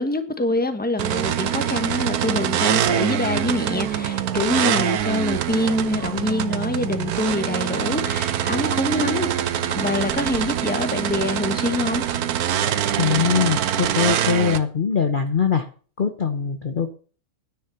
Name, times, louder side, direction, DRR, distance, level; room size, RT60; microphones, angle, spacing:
voice 1, 0.0-9.4 9.8-12.0, left 2 dB, 5° left, 1.1 m, -25 dB
sound 1, 1.0-14.6, right 10 dB, 85° right, 1.3 m, -24 dB
voice 2, 13.0-15.7 16.0-16.9, left 7 dB, 40° left, 0.9 m, -22 dB
10.5 x 9.8 x 5.9 m
omnidirectional pair, 1.6 m